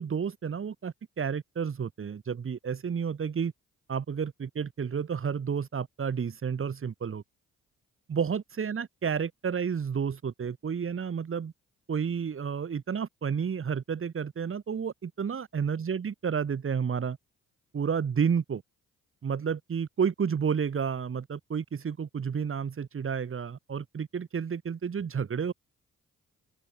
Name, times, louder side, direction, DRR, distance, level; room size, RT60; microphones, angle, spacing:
voice 1, 0.0-3.5 3.9-7.2 8.1-11.5 11.9-17.2 17.7-18.6 19.2-25.5, right 6 dB, 35° right, 1.1 m, -31 dB
open air
hypercardioid pair, 45°, 35 cm